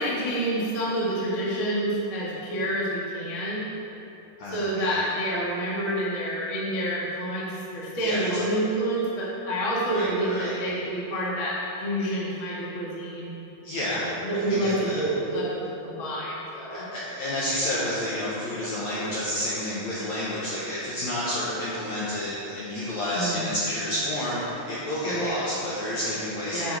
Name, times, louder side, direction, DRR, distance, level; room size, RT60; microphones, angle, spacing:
voice 1, 0.0-3.7 4.5-13.3 13.9-16.8 23.1-23.4 25.0-25.3 26.5-26.8, right 1 dB, 45° left, -6 dB, 1.0 m, -28 dB
voice 2, 4.4-5.0 8.0-8.3 9.9-10.6 13.6-15.0 16.7-26.8, left 1 dB, 70° left, -7 dB, 1.8 m, -30 dB
10.5 x 6.8 x 4.7 m, 3.0 s
omnidirectional pair, 4.7 m